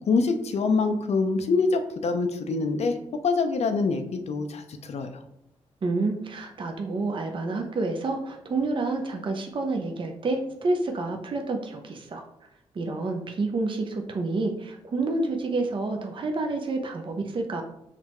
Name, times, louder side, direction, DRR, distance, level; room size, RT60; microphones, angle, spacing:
voice 1, 0.1-3.0 3.2-5.1, left 4 dB, 65° left, 7 dB, 0.5 m, -25 dB
voice 2, 5.8-12.2 12.7-17.6, right 3 dB, 45° right, 3 dB, 0.6 m, -29 dB
5.8 x 2.1 x 3.0 m, 0.81 s
cardioid pair, 60°, 12 cm